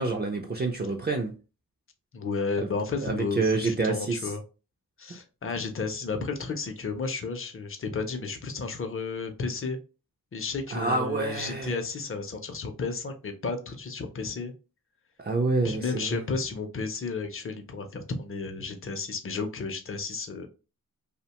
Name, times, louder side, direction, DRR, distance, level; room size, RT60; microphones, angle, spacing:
voice 1, 0.0-1.3 2.6-2.7 3.0-4.3 10.7-11.8 15.2-16.2, right 3 dB, 30° right, 0.4 m, -27 dB
voice 2, 2.1-4.4 5.0-9.8 10.3-14.5 15.6-20.5, left 4 dB, 40° left, 0.5 m, -32 dB
2.7 x 2.1 x 2.8 m
wide cardioid pair, 90°, 35 cm